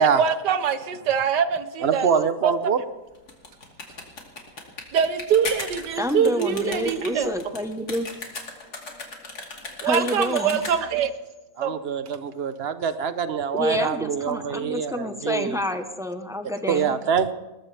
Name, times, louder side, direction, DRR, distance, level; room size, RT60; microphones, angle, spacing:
voice 1, 0.0-2.1 2.4-2.5 4.9-7.3 9.8-11.1 11.6-11.8, right 7 dB, 80° right, 11 dB, 1.6 m, -23 dB
voice 2, 1.8-2.8 11.6-15.6 16.7-17.3, right 6 dB, 45° right, 11 dB, 0.9 m, -24 dB
sound 1, 3.1-11.0, left 3 dB, 65° left, 3.0 m, -36 dB
voice 3, 6.0-8.1 9.8-10.6 13.5-17.0, left 1 dB, 5° right, 6 dB, 0.8 m, -28 dB
21.5 x 19.5 x 3.4 m, 1.0 s
omnidirectional pair, 1.8 m